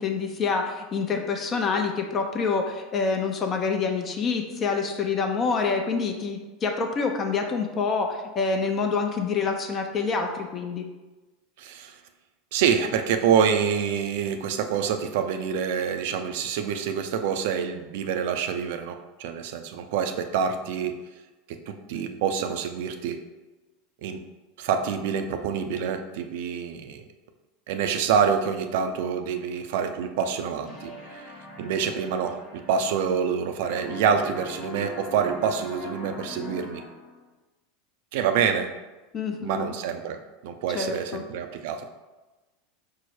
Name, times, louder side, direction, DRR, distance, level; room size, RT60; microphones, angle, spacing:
voice 1, 0.0-10.9 39.1-39.7 40.7-41.2, left 5 dB, 35° left, 3 dB, 0.6 m, -27 dB
voice 2, 11.6-12.0 12.5-21.1 21.5-23.2 24.0-24.2 24.6-27.0 27.7-36.8 38.1-38.7 39.4-41.9, right 7 dB, 70° right, 7 dB, 0.4 m, -27 dB
sound 1, 30.6-33.4 33.6-37.2, left 2 dB, 55° left, 1.2 m, -41 dB
4.6 x 2.1 x 4.5 m, 1.2 s
hypercardioid pair, 95°, 0 cm